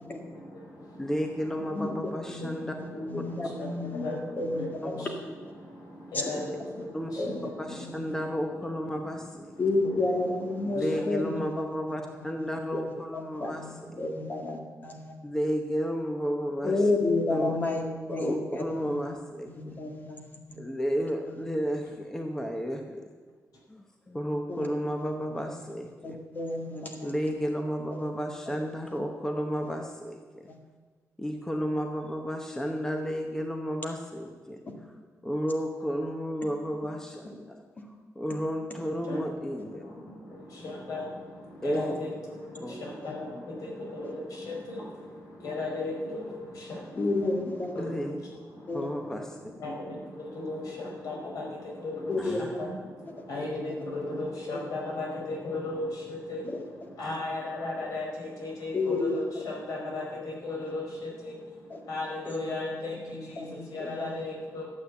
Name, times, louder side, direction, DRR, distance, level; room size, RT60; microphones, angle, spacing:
voice 1, 0.0-11.4 13.5-14.0 16.6-16.7 19.7-19.8 39.0-64.7, left 2 dB, 80° left, -2 dB, 4.6 m, -37 dB
voice 2, 1.0-2.7 6.9-7.1 7.6-9.5 10.7-13.9 15.2-16.8 17.3-17.6 18.1-19.8 20.6-23.1 23.7-26.2 27.0-30.4 31.2-34.6 35.2-37.6 38.1-39.8 41.6-41.9 42.6-42.7 47.8-48.2 48.7-49.4 52.2-52.5, equal, 10° left, 3 dB, 0.9 m, -32 dB
voice 3, 2.3-5.1 7.2-8.1 9.6-11.4 12.2-12.8 13.1-15.1 16.6-19.1 19.5-20.4 21.3-21.4 21.8-21.9 24.5-24.7 25.0-25.1 25.5-25.6 26.0-27.1 28.5-28.6 28.9-29.0 29.6-29.8 30.5-30.6 43.0-43.1 47.0-47.9 48.7-48.9 52.1-52.6 54.5-54.6 56.4-56.6 58.7-59.2 61.7-61.8 62.3-62.5 63.4-64.1, left 2 dB, 30° left, 2 dB, 2.0 m, -31 dB
12.5 x 8.3 x 8.1 m, 1.5 s
wide cardioid pair, 160°, 6 cm